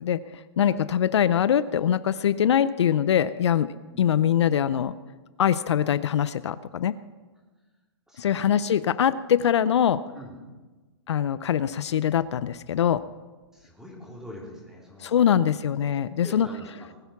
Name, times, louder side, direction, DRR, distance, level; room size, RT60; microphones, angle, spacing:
voice 1, 0.0-3.7 4.0-4.9 5.4-6.9 8.2-10.0 11.1-13.0 15.0-16.5, left 9 dB, 75° left, 15 dB, 0.6 m, -23 dB
voice 2, 8.1-8.5 10.1-10.4 13.5-15.4 15.7-15.8 16.2-16.9, left 1 dB, 5° right, -2 dB, 3.5 m, -44 dB
19.5 x 9.3 x 5.9 m, 1.3 s
hypercardioid pair, 145°, 15 cm